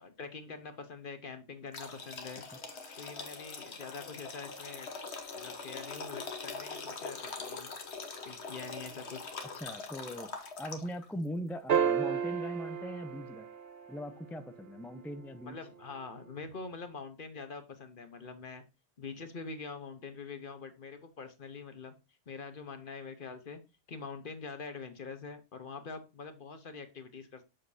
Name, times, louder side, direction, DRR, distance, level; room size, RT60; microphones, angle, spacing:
voice 1, 0.0-2.4 3.0-4.9 5.4-7.7 8.2-9.3 15.4-18.6 19.0-21.9 22.3-23.6 23.9-27.4, left 4 dB, 50° left, 9 dB, 1.2 m, -44 dB
sound 1, 1.7-11.0, left 4 dB, 70° left, 1.4 m, -43 dB
voice 2, 9.5-10.3 10.6-13.5 13.9-15.6, equal, 5° left, 8 dB, 0.4 m, -40 dB
sound 2, 11.7-14.2 16.4-16.5, right 8 dB, 65° right, 0.9 m, -31 dB
7.7 x 6.6 x 2.7 m, 0.27 s
omnidirectional pair, 1.2 m